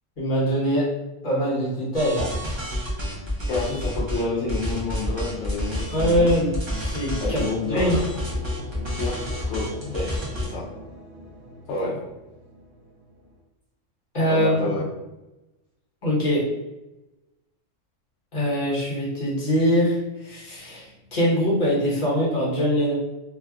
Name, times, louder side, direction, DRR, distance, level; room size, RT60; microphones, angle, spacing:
voice 1, 0.2-0.9 1.2-2.3 5.9-8.0 14.1-14.5 16.0-16.4 18.3-22.9, equal, 40° left, -6 dB, 1.1 m, -23 dB
sound 1, 1.9-4.2 4.5-10.4, equal, 30° right, 0.6 m, -29 dB
voice 2, 3.5-6.3 7.2-8.0 9.0-9.2 9.5-10.6 11.7-12.0 14.3-14.8, left 3 dB, 65° left, -6 dB, 0.8 m, -29 dB
sound 2, 7.9-13.4, equal, 65° right, 1.0 m, -42 dB
3.2 x 2.3 x 2.4 m, 1.0 s
omnidirectional pair, 1.3 m